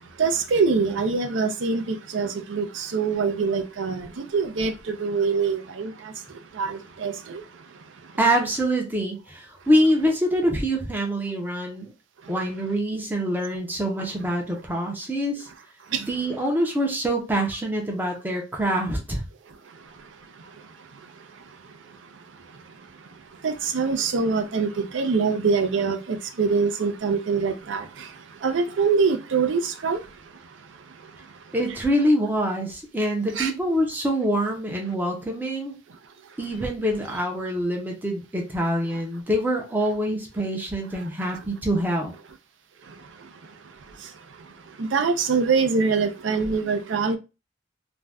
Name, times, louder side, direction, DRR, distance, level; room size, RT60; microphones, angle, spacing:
voice 1, 0.2-4.1 4.3-5.9 6.6-7.4 23.4-24.7 24.9-27.8 28.4-30.0 33.4-33.5 44.8-47.2, right 5 dB, 70° right, 0.5 m, -24 dB
voice 2, 8.2-11.9 12.3-15.5 16.1-19.2 31.5-35.7 36.4-42.1, equal, 10° right, 0.5 m, -25 dB
2.5 x 2.1 x 3.4 m
head